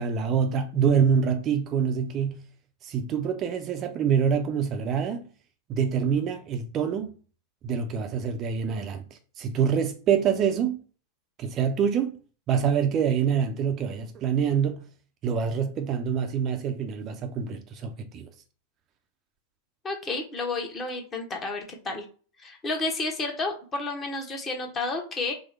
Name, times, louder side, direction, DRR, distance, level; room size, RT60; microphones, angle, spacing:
voice 1, 0.0-2.5 2.8-5.3 5.7-7.1 7.6-9.0 9.4-10.8 11.4-12.1 12.5-14.9 15.2-18.3, right 7 dB, 30° right, 0.5 m, -26 dB
voice 2, 19.8-22.0 22.4-25.3, left 3 dB, 25° left, 1.0 m, -31 dB
4.6 x 2.1 x 3.2 m
figure-of-eight pair, 90°, 0 cm